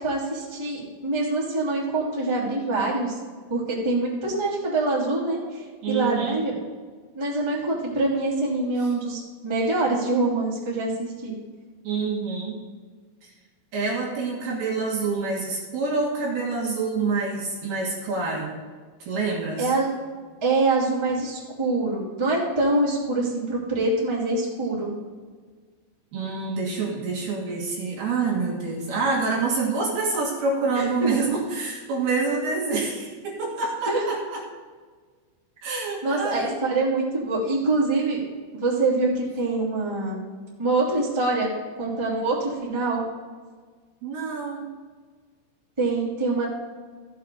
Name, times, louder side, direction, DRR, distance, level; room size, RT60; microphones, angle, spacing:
voice 1, 0.0-3.1 3.5-6.5 7.1-11.3 19.6-19.9 20.4-24.9 30.7-31.1 33.9-34.0 36.0-38.2 38.5-40.2 40.6-41.5 41.8-43.0 45.8-46.5, right 2 dB, 10° right, -6 dB, 1.4 m, -25 dB
voice 2, 5.8-6.4 8.8-8.9 11.8-12.6 13.2-13.3 13.7-18.6 19.0-19.7 26.1-34.4 35.6-36.5 44.0-44.7, right 4 dB, 60° right, -3 dB, 3.1 m, -27 dB
15.0 x 7.5 x 3.9 m, 1.5 s
omnidirectional pair, 5.8 m